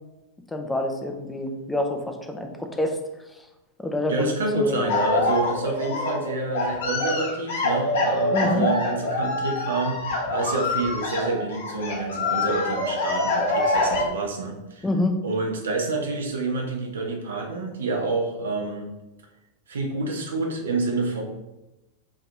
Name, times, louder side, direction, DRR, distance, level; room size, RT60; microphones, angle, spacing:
voice 1, 0.5-3.0 3.8-4.9 8.3-8.7 14.8-15.2, left 1 dB, 10° left, 4 dB, 0.5 m, -27 dB
voice 2, 4.0-14.9 15.2-18.9 19.7-21.2, right 3 dB, 65° right, 2 dB, 0.8 m, -28 dB
sound 1, 4.9-14.0, left 2 dB, 60° left, 1.0 m, -25 dB
4.5 x 2.9 x 3.5 m, 0.99 s
figure-of-eight pair, 90°, 0 cm